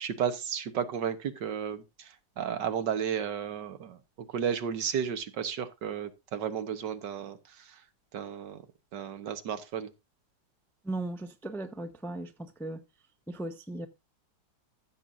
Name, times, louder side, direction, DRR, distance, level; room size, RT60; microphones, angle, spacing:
voice 1, 0.0-4.0 4.3-7.8 8.1-8.6 8.9-9.9, right 8 dB, 75° right, 1.8 m, -33 dB
voice 2, 10.8-12.8 13.3-13.9, right 2 dB, ahead, 0.5 m, -37 dB
15.0 x 7.4 x 2.6 m
omnidirectional pair, 1.9 m